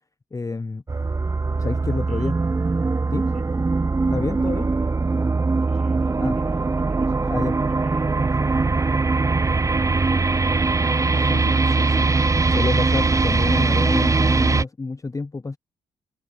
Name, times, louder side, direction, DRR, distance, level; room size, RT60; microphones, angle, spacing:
voice 1, 0.3-0.8 1.6-2.3 3.1-3.3 4.1-4.7 6.2-6.3 7.3-7.5 11.1-11.5 11.8-15.6, left 3 dB, 20° left, 0.6 m, -28 dB
sound 1, 0.9-14.6, right 3 dB, 20° right, 0.6 m, -21 dB
voice 2, 2.1-2.5 3.3-3.5 4.5-5.3 5.6-11.6, right 6 dB, 55° right, 5.5 m, -51 dB
hypercardioid pair, 45°, 15 cm